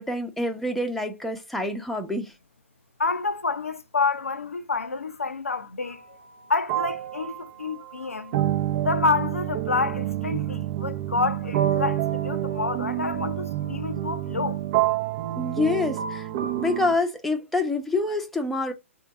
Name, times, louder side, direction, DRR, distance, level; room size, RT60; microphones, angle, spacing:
voice 1, 0.0-2.3 15.4-18.7, left 2 dB, ahead, 0.7 m, -27 dB
voice 2, 3.0-6.0 6.5-8.3 8.8-14.6, left 4 dB, 85° left, 0.5 m, -28 dB
sound 1, 5.8-6.0 6.7-17.0, right 12 dB, 45° right, 0.5 m, -28 dB
3.7 x 2.6 x 4.7 m
figure-of-eight pair, 120°, 7 cm